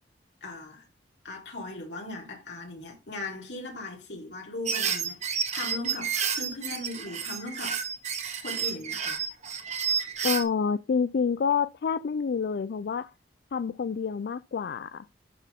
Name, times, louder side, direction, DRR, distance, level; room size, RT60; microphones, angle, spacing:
voice 1, 0.4-0.9 1.2-7.8 8.4-9.2, left 2 dB, 85° left, 3.8 m, -39 dB
sound 1, 4.7-10.4, right 7 dB, 40° right, 1.3 m, -30 dB
voice 2, 10.2-13.1 13.5-15.1, left 6 dB, 60° left, 0.4 m, -28 dB
11.5 x 4.2 x 3.6 m
head